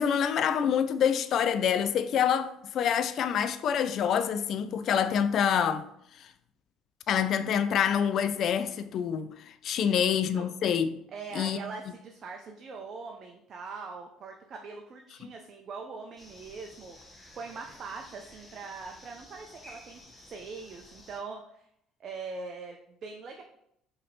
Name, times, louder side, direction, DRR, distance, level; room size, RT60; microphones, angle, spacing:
voice 1, 0.0-5.8 6.2-6.3 7.1-11.0 11.3-11.6, left 8 dB, 55° left, 0.3 m, -26 dB
voice 2, 9.8-10.5 11.1-17.0 17.3-21.7 22.0-23.4, right 4 dB, 45° right, 0.5 m, -42 dB
sound 1, 16.2-21.2, left 1 dB, 10° left, 0.9 m, -53 dB
5.0 x 2.8 x 2.8 m
hypercardioid pair, 60°, 0 cm